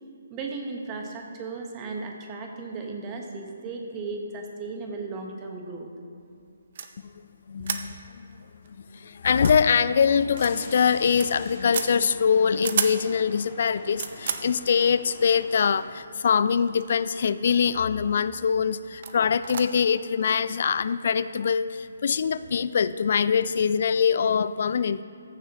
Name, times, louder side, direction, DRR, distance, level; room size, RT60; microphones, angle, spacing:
voice 1, 0.3-5.9, right 3 dB, 25° right, 2 dB, 1.2 m, -35 dB
sound 1, 6.8-6.9 7.6-7.9 8.2-8.3 8.6-8.7 9.3-9.6 10.3-10.5 10.9-11.3 11.7-11.9 12.5-13.0 13.6-14.5 15.5-15.6 16.4-17.0 17.2-17.7 18.2-18.4 19.0-19.2 19.4-19.6, right 7 dB, 50° right, 0.6 m, -31 dB
voice 2, 7.5-8.2 8.7-25.0, left 6 dB, 55° left, 15 dB, 0.3 m, -23 dB
sound 2, 10.3-15.9, left 1 dB, 20° left, 2.3 m, -46 dB
14.5 x 7.4 x 3.0 m, 2.6 s
figure-of-eight pair, 140°, 0 cm